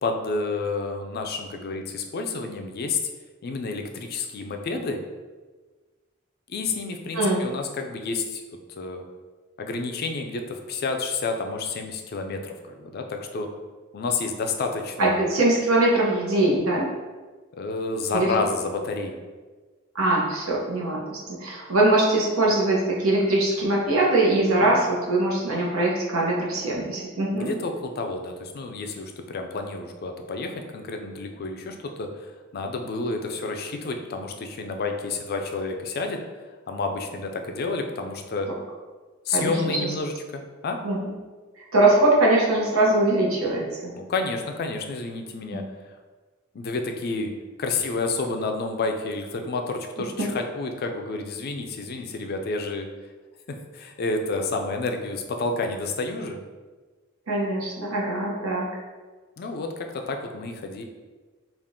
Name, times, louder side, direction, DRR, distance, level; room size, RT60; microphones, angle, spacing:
voice 1, 0.0-3.0 3.4-5.0 6.5-8.4 8.8-9.0 9.6-13.5 13.9-15.3 17.6-19.2 24.6-24.8 27.3-32.1 32.5-36.2 36.7-38.5 39.3-40.8 43.9-45.6 46.5-47.3 47.6-52.9 53.7-56.4 59.4-60.8, left 3 dB, 45° left, 4 dB, 0.4 m, -30 dB
voice 2, 15.0-16.9 18.1-18.3 19.9-27.5 39.3-39.9 40.8-41.1 41.7-43.6 45.5-45.6 50.2-50.3 57.3-58.7, right 2 dB, 85° right, -3 dB, 0.9 m, -22 dB
3.7 x 2.4 x 3.6 m, 1.3 s
head